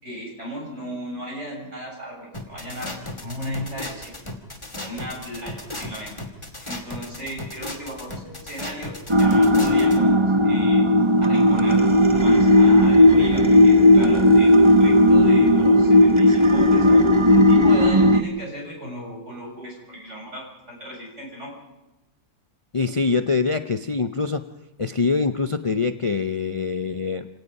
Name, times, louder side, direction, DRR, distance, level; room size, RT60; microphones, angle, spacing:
voice 1, 0.0-4.1 4.8-6.1 6.7-10.9 11.2-21.5, equal, 45° right, -2 dB, 7.8 m, -35 dB
sound 1, 2.3-10.0, left 1 dB, 20° left, 2.4 m, -35 dB
sound 2, 9.1-18.2, left 1 dB, 25° right, 0.8 m, -15 dB
voice 2, 22.7-24.4 24.8-27.3, left 4 dB, 55° left, 8 dB, 0.3 m, -24 dB
27.0 x 18.0 x 5.5 m, 1.0 s
omnidirectional pair, 1.7 m